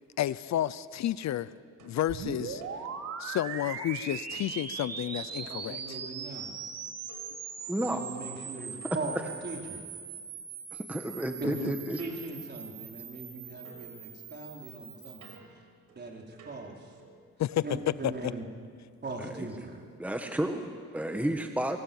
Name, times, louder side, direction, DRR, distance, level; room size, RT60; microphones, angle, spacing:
voice 1, 0.2-1.5 1.8-2.6 3.2-6.0 11.4-11.7 17.4-17.6 18.0-18.3, left 12 dB, 65° left, 17 dB, 0.7 m, -31 dB
sound 1, 1.8-3.9 4.3-6.1 7.1-10.3 12.0-13.4 13.6-17.3, right 3 dB, 80° right, 5.2 m, -56 dB
sound 2, 2.1-15.4, right 6 dB, 55° right, 2.7 m, -41 dB
voice 2, 5.4-6.6 7.8-9.2 9.4-9.8 11.4-15.4 16.0-16.9 17.6-18.4 19.0-19.8, right 3 dB, 35° right, 0 dB, 4.5 m, -40 dB
voice 3, 7.7-8.0 9.1-9.2 10.7-12.0 19.2-19.5 20.0-21.8, right 1 dB, 5° right, 5 dB, 1.7 m, -32 dB
25.0 x 23.5 x 7.3 m, 2.1 s
cardioid pair, 90°, 30 cm